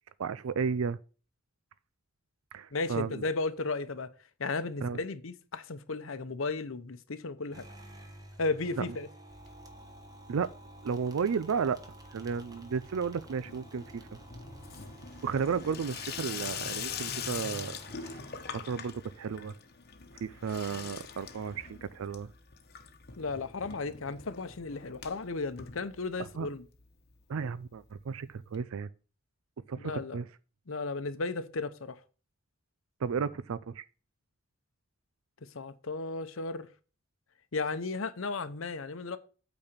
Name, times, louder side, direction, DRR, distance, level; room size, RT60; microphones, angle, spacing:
voice 1, 0.2-1.0 2.5-3.2 4.8-5.0 8.8-8.9 10.3-10.5 10.8-11.8 12.1-14.0 15.2-17.8 18.5-19.6 20.2-22.3 26.4-26.5 27.3-28.9 29.7-30.2 33.0-33.8, right 6 dB, 85° right, 0.4 m, -33 dB
voice 2, 2.7-4.1 4.4-7.7 8.4-9.1 23.2-26.6 29.8-30.2 30.7-32.0 35.5-36.7 37.5-39.2, left 3 dB, 75° left, 0.8 m, -34 dB
sound 1, 7.5-18.9, right 1 dB, 20° right, 1.2 m, -51 dB
Water tap faucet / Sink (filling or washing), 9.3-10.1 10.3-10.9 11.2-26.5 26.8-26.9 27.1-27.2 27.4-27.5 28.5-28.6, left 7 dB, 50° left, 1.0 m, -43 dB
8.7 x 4.1 x 6.7 m
head